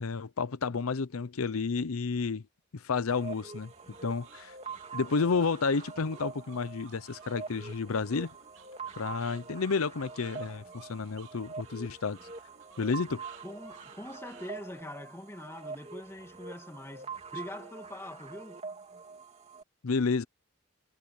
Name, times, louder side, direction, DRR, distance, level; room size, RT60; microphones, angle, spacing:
voice 1, 0.0-2.4 2.7-3.7 4.0-4.5 4.9-8.3 9.0-12.2 12.8-13.2 19.8-20.2, left 4 dB, 85° left, 0.7 m, -31 dB
sound 1, 3.1-19.6, right 4 dB, 30° right, 3.0 m, -45 dB
sound 2, 3.7-14.8, right 6 dB, 60° right, 3.1 m, -57 dB
voice 2, 13.4-18.6, left 1 dB, 10° left, 1.8 m, -44 dB
head